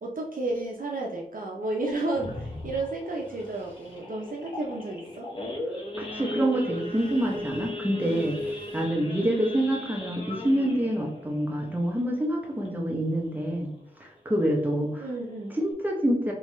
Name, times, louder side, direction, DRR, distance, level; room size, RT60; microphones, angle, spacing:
voice 1, 0.0-5.3 8.0-8.3 9.0-9.6 15.0-15.6, right 2 dB, 55° right, -1 dB, 0.6 m, -32 dB
Idling / Accelerating revving vroom / Sawing, 1.8-12.9 13.3-13.5 13.8-13.9 14.3-14.6 15.1-15.2 15.4-15.7, left 1 dB, 30° left, 1.0 m, -38 dB
sound 1, 2.1-4.0 6.8-8.8, left 2 dB, 10° left, 1.3 m, -44 dB
voice 2, 6.1-8.4 8.7-13.7 14.0-15.0 15.6-16.3, right 1 dB, 10° right, 0 dB, 0.9 m, -26 dB
3.5 x 3.2 x 3.1 m, 0.73 s
wide cardioid pair, 105°, 17 cm